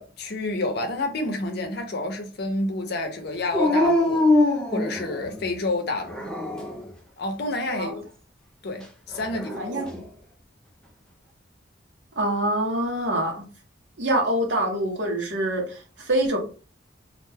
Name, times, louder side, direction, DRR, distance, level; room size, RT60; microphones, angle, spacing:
voice 1, 0.0-4.3 4.7-6.3 7.2-8.0 8.6-9.7, left 2 dB, 60° left, 0.6 m, -29 dB
Dog, 3.5-5.4 6.1-6.9 9.1-10.0, left 1 dB, 5° left, 0.4 m, -23 dB
voice 2, 9.5-10.0 12.2-13.4 14.0-15.8 16.1-16.4, right 1 dB, 70° right, 1.0 m, -25 dB
2.4 x 2.2 x 3.3 m
head